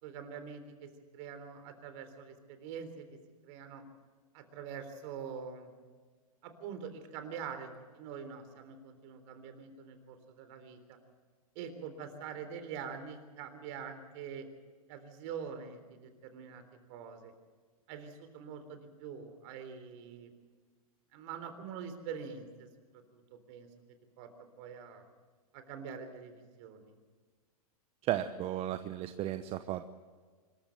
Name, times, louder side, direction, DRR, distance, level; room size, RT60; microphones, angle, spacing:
voice 1, 0.0-3.1 3.4-3.8 4.3-5.7 6.4-11.0 11.6-14.5 14.9-16.6 16.9-17.3 17.9-20.3 21.1-22.7 23.1-23.7 24.2-25.0 25.5-26.9, right 7 dB, 50° right, 9 dB, 3.6 m, -45 dB
voice 2, 28.0-29.8, right 12 dB, 30° right, 10 dB, 0.9 m, -34 dB
25.0 x 14.0 x 7.7 m, 1.5 s
hypercardioid pair, 120°, 19 cm